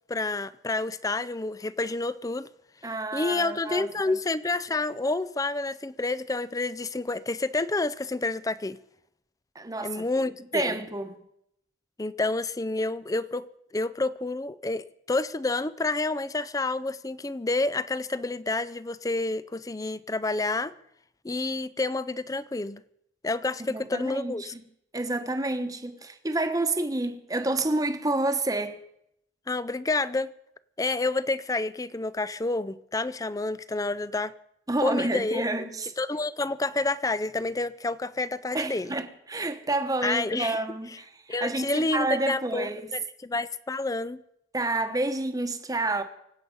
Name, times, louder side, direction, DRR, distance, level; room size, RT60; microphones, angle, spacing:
voice 1, 0.1-2.5 3.1-8.8 9.8-10.8 12.0-13.5 13.7-20.7 21.2-22.8 23.2-24.5 29.5-30.3 30.8-34.3 34.8-35.7 36.0-38.9 40.0-40.6 41.3-44.2, left 2 dB, 20° left, 0.5 m, -29 dB
voice 2, 2.8-4.2 9.5-10.0 10.5-11.2 23.6-24.6 24.9-28.8 34.7-35.9 38.5-42.9 44.5-46.0, right 2 dB, 20° right, 1.2 m, -29 dB
25.5 x 8.6 x 5.4 m
head